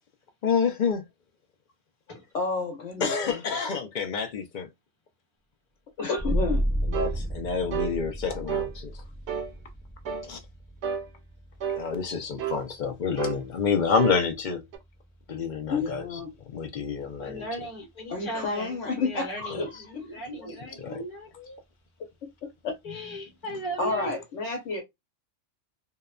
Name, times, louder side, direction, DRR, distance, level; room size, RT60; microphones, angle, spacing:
voice 1, 0.4-1.0 3.0-4.7 6.9-9.0 10.3-10.4 11.7-14.6 15.3-16.0 16.5-17.5 20.8-21.0, left 6 dB, 60° left, 0.5 m, -28 dB
voice 2, 2.3-3.4 6.0-6.6 15.7-16.3 18.1-20.6 22.2-22.7 23.8-24.8, left 4 dB, 80° left, 1.0 m, -31 dB
sound 1, 6.2-17.4, right 1 dB, 5° left, 0.4 m, -34 dB
sound 2, 6.9-7.2 7.7-8.0 8.5-8.7 9.3-9.5 10.1-10.3 10.8-11.1 11.6-11.8 12.4-12.6 13.2-13.4 14.0-14.2 14.7-14.8, right 9 dB, 65° right, 0.9 m, -30 dB
voice 3, 17.2-18.8 19.0-21.6 22.8-24.1, right 1 dB, 25° left, 1.0 m, -37 dB
2.8 x 2.1 x 2.2 m
omnidirectional pair, 1.2 m